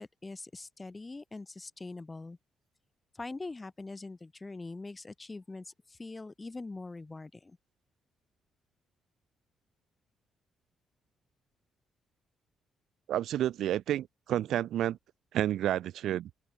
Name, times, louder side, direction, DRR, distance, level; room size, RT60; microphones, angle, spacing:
voice 1, 0.0-2.4 3.1-7.6, left 3 dB, 20° left, 4.5 m, -43 dB
voice 2, 13.1-15.0 15.3-16.3, right 12 dB, 75° right, 0.6 m, -30 dB
open air
cardioid pair, 90°, 0 cm